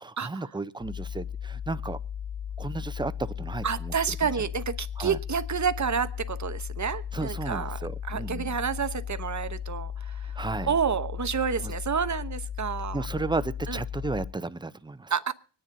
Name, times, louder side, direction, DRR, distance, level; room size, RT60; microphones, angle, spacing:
voice 1, 0.0-2.0 2.6-4.2 5.0-5.2 7.1-8.5 10.4-10.7 11.6-11.7 12.9-15.1, right 3 dB, 10° right, 0.5 m, -33 dB
sound 1, 0.8-14.3, left 8 dB, 55° left, 1.1 m, -36 dB
voice 2, 3.6-7.8 8.1-10.3 10.6-13.1 13.7-13.8 15.1-15.3, right 6 dB, 40° right, 0.9 m, -29 dB
24.5 x 10.0 x 2.6 m
cardioid pair, 50°, 46 cm